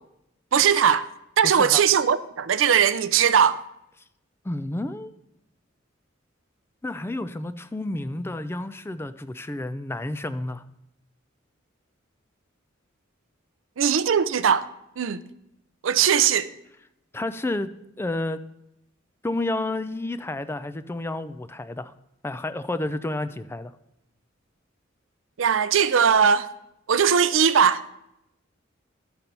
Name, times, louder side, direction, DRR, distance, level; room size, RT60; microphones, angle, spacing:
voice 1, 0.5-1.1 1.4-3.6 13.8-14.7 15.0-15.2 15.8-16.5 25.4-26.5 26.9-27.8, right 7 dB, 75° right, 0.5 m, -19 dB
voice 2, 1.4-1.8 4.4-5.1 6.8-10.6 17.1-17.7 18.0-18.4 19.2-21.9 22.2-23.7, left 2 dB, 10° left, 0.3 m, -30 dB
12.5 x 4.4 x 5.3 m
head